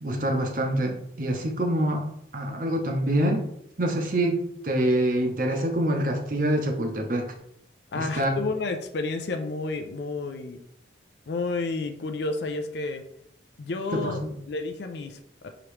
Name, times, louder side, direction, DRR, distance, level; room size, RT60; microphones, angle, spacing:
voice 1, 0.0-2.1 2.3-3.4 3.8-7.3 8.0-8.4 13.9-14.3, right 1 dB, 45° right, 3 dB, 0.7 m, -26 dB
voice 2, 7.9-10.6 11.3-13.0 13.6-14.2 14.5-15.5, left 3 dB, 60° left, 6 dB, 0.4 m, -31 dB
4.9 x 2.9 x 3.2 m, 0.72 s
head